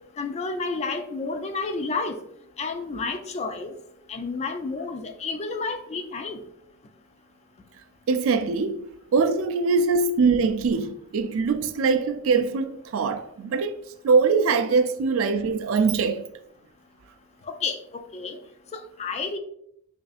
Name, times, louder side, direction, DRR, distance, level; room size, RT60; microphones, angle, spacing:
voice 1, 0.2-2.2 2.6-3.7 4.1-6.4 14.7-14.8 17.5-18.4 18.7-19.4, left 4 dB, 30° left, 0.3 m, -31 dB
voice 2, 8.1-8.8 9.1-13.7 14.0-16.2, right 4 dB, 65° right, 0.4 m, -22 dB
5.5 x 2.6 x 2.4 m
head